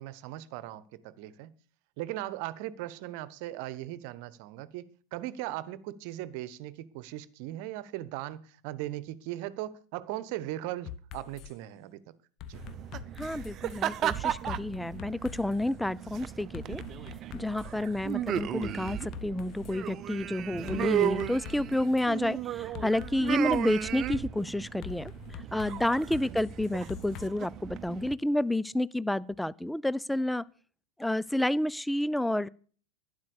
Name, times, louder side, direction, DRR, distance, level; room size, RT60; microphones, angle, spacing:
voice 1, 0.0-1.5 2.0-4.8 5.1-12.0 12.5-12.6 26.3-26.4, right 14 dB, 50° right, 1.1 m, -38 dB
sound 1, 10.9-11.5 12.4-13.8 14.5-15.7 16.5-17.9 18.4-19.8 20.7-22.1 22.7-23.9 24.8-27.3, left 10 dB, 40° left, 1.2 m, -44 dB
sound 2, 12.5-28.1, right 11 dB, 35° right, 0.9 m, -35 dB
voice 2, 13.2-16.8 17.3-25.1 25.5-30.4 31.0-32.5, left 1 dB, 5° left, 0.5 m, -30 dB
12.0 x 10.5 x 6.8 m
figure-of-eight pair, 90°, 0 cm